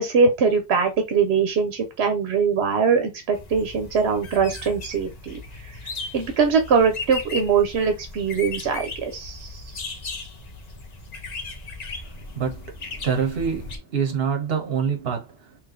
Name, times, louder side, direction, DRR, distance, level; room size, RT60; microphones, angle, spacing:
voice 1, 0.0-5.8 6.1-9.6, right 5 dB, 90° right, 1.0 m, -22 dB
sound 1, 3.3-13.8, left 3 dB, 45° left, 0.9 m, -37 dB
voice 2, 12.2-15.6, right 6 dB, 70° right, 1.2 m, -26 dB
3.3 x 3.1 x 3.7 m
omnidirectional pair, 1.1 m